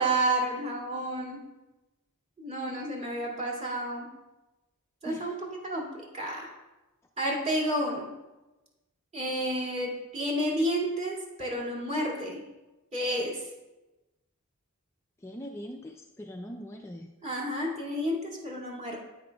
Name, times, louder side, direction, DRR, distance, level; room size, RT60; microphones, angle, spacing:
voice 1, 0.0-1.4 2.4-4.1 5.0-6.5 7.2-8.1 9.1-12.4 12.9-13.4 17.2-19.0, right 1 dB, 30° right, -4 dB, 2.2 m, -30 dB
voice 2, 15.2-17.1, equal, 10° left, 2 dB, 0.4 m, -41 dB
9.9 x 9.6 x 2.3 m, 1.1 s
head